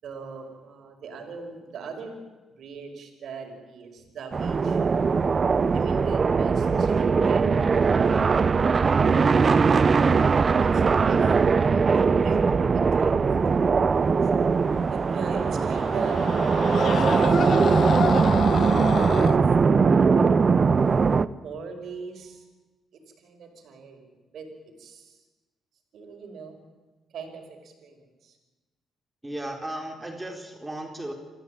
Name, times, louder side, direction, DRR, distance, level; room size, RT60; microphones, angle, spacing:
voice 1, 0.0-2.2 2.5-5.0 5.7-8.4 10.2-14.2 14.9-17.8 18.5-20.3 21.4-22.5 22.9-25.2 25.9-26.6 27.1-28.4, right 5 dB, 70° right, 4 dB, 5.1 m, -41 dB
sound 1, 4.3-21.3, right 5 dB, 40° right, 0.7 m, -21 dB
Screaming, 14.9-19.4, left 7 dB, 60° left, 1.1 m, -30 dB
voice 2, 29.2-31.1, right 1 dB, 15° right, 3 dB, 4.1 m, -35 dB
26.5 x 15.0 x 8.9 m, 1.2 s
cardioid pair, 75°, 0 cm